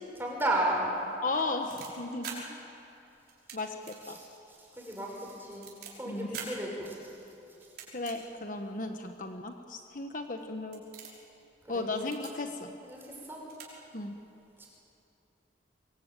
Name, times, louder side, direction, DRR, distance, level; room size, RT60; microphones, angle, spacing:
voice 1, 0.1-0.9 4.0-5.7 6.0-7.1 11.6-11.9 12.8-13.4 14.6-14.7, right 1 dB, 10° right, -2 dB, 6.1 m, -34 dB
voice 2, 1.2-2.6 3.5-4.2 6.1-6.3 7.9-10.8 11.7-12.7 13.9-14.1, left 2 dB, 45° left, 5 dB, 1.2 m, -35 dB
sound 1, 1.3-2.4 3.3-3.6 3.8-4.0 4.4-4.5 5.0-5.9 6.3-6.5 7.6-8.1 8.8-8.9 9.8-9.9 10.3-10.4 10.7-11.2 11.9-12.3 13.2-13.3 13.5-13.7 13.9-14.0, right 7 dB, 60° right, 6.0 m, -44 dB
23.5 x 23.0 x 9.2 m, 2.8 s
head